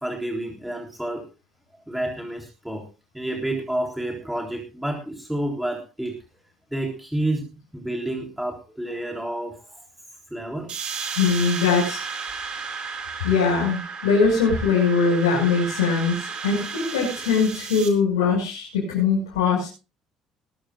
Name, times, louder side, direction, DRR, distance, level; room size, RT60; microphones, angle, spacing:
voice 1, 0.0-1.2 1.9-2.8 3.1-6.2 6.7-9.8 10.3-10.7, right 1 dB, 5° right, 2 dB, 3.6 m, -29 dB
sound 1, 10.7-17.9, right 5 dB, 50° right, 4.3 m, -33 dB
voice 2, 11.2-12.0 13.2-19.7, left 5 dB, 80° left, -5 dB, 6.0 m, -21 dB
20.5 x 14.0 x 2.5 m, 0.32 s
hypercardioid pair, 55°, 2 cm